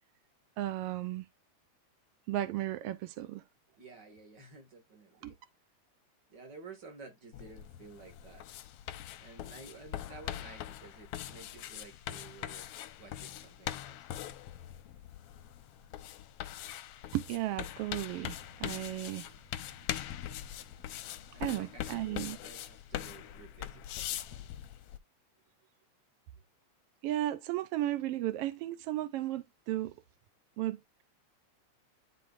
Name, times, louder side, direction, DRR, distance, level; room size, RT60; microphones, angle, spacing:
voice 1, 0.6-1.3 2.3-3.4 5.2-5.3 17.1-19.3 21.4-22.4 27.0-29.9 30.6-31.0, right 14 dB, 85° right, 1.3 m, -35 dB
voice 2, 3.8-5.4 6.3-8.5 9.2-12.7 13.0-14.0 21.3-24.5, right 4 dB, 40° right, 2.3 m, -52 dB
sound 1, 7.3-25.0, left 12 dB, 75° left, 1.4 m, -42 dB
11.0 x 4.2 x 2.5 m
omnidirectional pair, 3.3 m